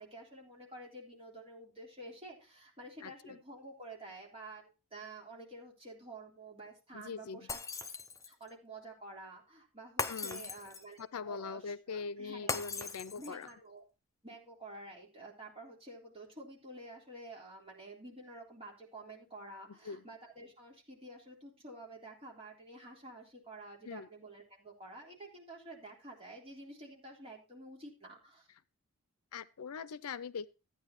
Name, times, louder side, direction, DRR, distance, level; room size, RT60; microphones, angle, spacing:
voice 1, 0.0-7.6 8.3-12.5 13.1-13.8 14.2-28.5, right 2 dB, 25° right, 3.6 m, -50 dB
voice 2, 3.0-3.4 6.9-7.5 10.1-10.5 11.0-13.5 19.7-20.0 23.8-24.1 29.3-30.5, left 5 dB, 85° left, 0.5 m, -42 dB
Shatter, 7.5-8.4 10.0-11.0 12.5-13.5, left 4 dB, 15° left, 0.6 m, -39 dB
13.5 x 9.5 x 3.0 m
head